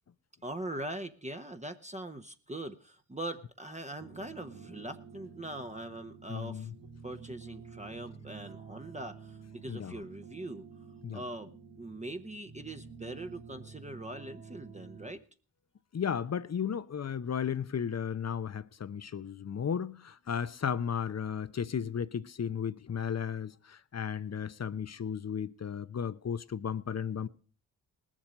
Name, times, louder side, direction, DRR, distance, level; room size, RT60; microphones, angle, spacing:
voice 1, 0.4-6.7 7.0-10.7 11.1-15.2, right 1 dB, 15° right, 1.0 m, -42 dB
sound 1, 4.0-15.1, right 5 dB, 85° right, 2.3 m, -50 dB
voice 2, 6.3-6.7 9.7-10.0 11.0-11.2 15.9-27.3, left 7 dB, 35° left, 0.8 m, -34 dB
19.0 x 7.4 x 5.1 m
supercardioid pair, 45°, 44 cm